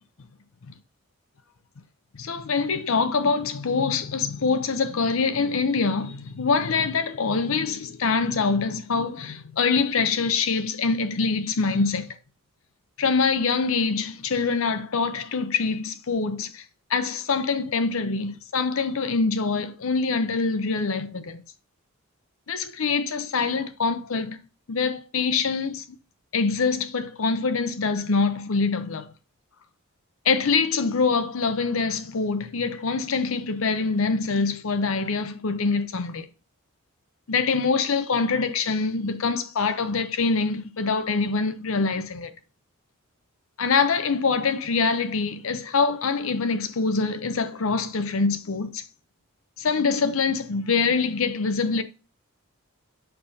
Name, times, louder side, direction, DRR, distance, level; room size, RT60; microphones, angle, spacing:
voice 1, 2.2-12.1 13.0-16.6 16.9-21.4 22.5-24.4 24.7-25.8 26.3-29.1 30.3-36.2 37.3-42.3 43.6-48.8 49.6-51.8, left 4 dB, 65° left, 0.6 m, -24 dB
6.8 x 5.5 x 2.7 m
head